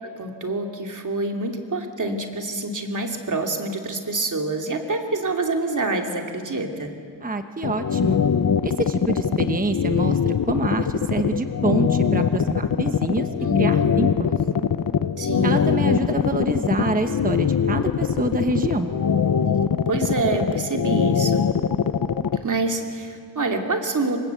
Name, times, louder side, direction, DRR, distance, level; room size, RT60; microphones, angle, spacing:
voice 1, 0.0-6.9 13.4-14.0 15.2-15.8 19.9-21.5 22.3-24.2, right 2 dB, 45° right, 3 dB, 2.8 m, -27 dB
voice 2, 7.2-8.2 8.6-13.3 13.5-14.4 15.4-18.9, right 2 dB, 20° right, 7 dB, 1.0 m, -26 dB
sound 1, 7.6-22.4, left 7 dB, 50° left, 0.9 m, -22 dB
28.0 x 25.0 x 8.1 m, 2.3 s
wide cardioid pair, 170°, 43 cm